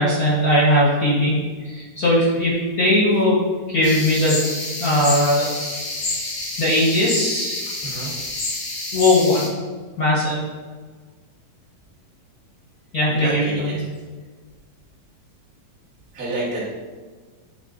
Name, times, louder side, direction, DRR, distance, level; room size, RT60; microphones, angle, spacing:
voice 1, 0.0-3.4 3.7-4.4 4.8-5.5 6.6-7.6 8.9-9.5 10.0-10.4 12.9-13.8, left 1 dB, 85° left, -6 dB, 0.8 m, -19 dB
sound 1, 3.8-9.5, left 2 dB, 60° left, 2.9 m, -28 dB
voice 2, 7.8-8.1 13.1-13.8 16.1-16.7, right 2 dB, 30° right, -9 dB, 1.6 m, -29 dB
8.6 x 3.4 x 3.8 m, 1.4 s
omnidirectional pair, 4.1 m